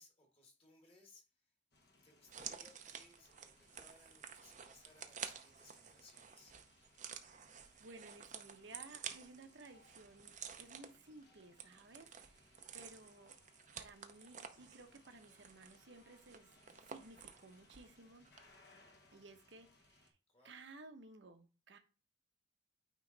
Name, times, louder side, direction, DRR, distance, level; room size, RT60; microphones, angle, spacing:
voice 1, 0.0-1.5 2.0-6.6 20.3-20.6, left 2 dB, 30° left, 1 dB, 1.6 m, -65 dB
sound 1, 1.7-20.1, left 2 dB, 55° left, 1.2 m, -69 dB
sound 2, 2.3-18.0 18.2-18.4, right 7 dB, 40° right, 0.6 m, -52 dB
voice 2, 7.2-7.5 7.8-13.3 13.7-18.3 19.1-20.1 20.4-21.8, right 3 dB, 65° right, 7 dB, 0.9 m, -57 dB
9.1 x 3.2 x 3.9 m, 0.35 s
head